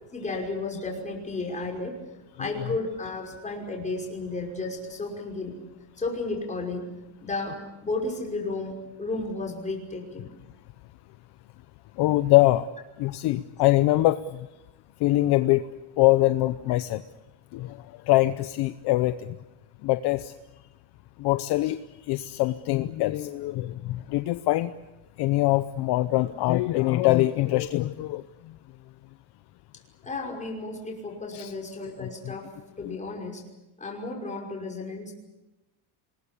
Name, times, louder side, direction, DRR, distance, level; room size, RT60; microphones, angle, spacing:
voice 1, 0.1-2.0 2.4-5.6 6.0-6.9 7.2-10.3 30.0-32.5 32.8-33.4 33.8-35.1, left 3 dB, 15° left, 1 dB, 5.6 m, -33 dB
voice 2, 12.0-12.7 13.0-14.5 15.0-15.6 16.0-17.0 17.5-19.4 19.8-20.3 21.2-24.7 25.2-28.5 31.3-31.5 32.0-32.1 32.8-33.0, left 17 dB, 50° left, 12 dB, 0.8 m, -23 dB
26.0 x 21.0 x 8.4 m, 1.0 s
cardioid pair, 155°, 50 cm